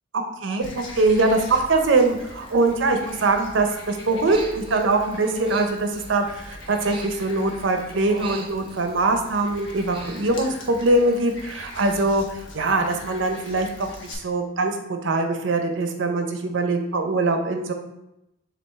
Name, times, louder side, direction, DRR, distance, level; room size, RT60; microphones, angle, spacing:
voice 1, 0.1-17.7, right 2 dB, 75° right, 5 dB, 0.6 m, -22 dB
Frog, 0.6-14.1, left 2 dB, 70° left, 0.9 m, -42 dB
Human voice, 4.1-4.9 5.2-7.6 7.9-9.2 9.5-11.4 11.6-12.0, right 3 dB, 30° right, 0.6 m, -41 dB
6.1 x 2.5 x 3.5 m, 0.88 s
head